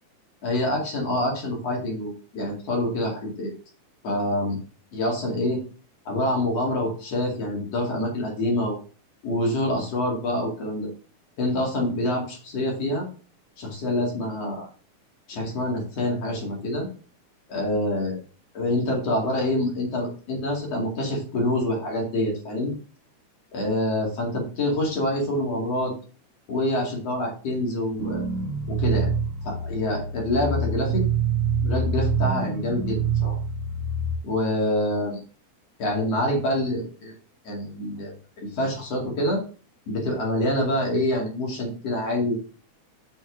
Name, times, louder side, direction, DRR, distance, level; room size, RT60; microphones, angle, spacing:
voice 1, 0.4-3.5 4.0-4.6 4.9-5.6 6.0-8.8 9.2-10.9 11.4-13.1 13.6-14.7 15.3-16.9 17.5-18.2 18.5-22.7 23.5-25.9 26.5-28.2 28.7-29.1 29.4-31.0 31.6-33.4 34.2-35.2 35.8-37.1 37.4-39.4 39.9-42.5, left 1 dB, 55° left, -1 dB, 3.3 m, -26 dB
sound 1, 28.0-34.2, right 4 dB, 75° right, 2.1 m, -26 dB
6.5 x 6.1 x 3.9 m, 0.40 s
omnidirectional pair, 3.5 m